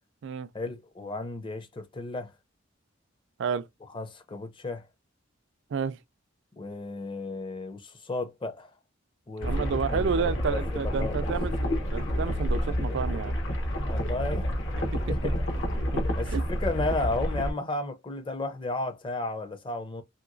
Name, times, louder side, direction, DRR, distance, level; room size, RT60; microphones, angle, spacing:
voice 1, 0.5-2.3 3.9-4.9 6.6-8.7 9.3-11.4 13.8-14.6 15.1-15.4 16.2-20.0, left 2 dB, 25° left, 0.5 m, -34 dB
sound 1, 9.4-17.5, equal, 70° left, 1.0 m, -29 dB
voice 2, 9.4-13.4 14.9-15.0 15.9-16.4, right 6 dB, 65° right, 0.4 m, -31 dB
3.0 x 2.8 x 2.5 m
head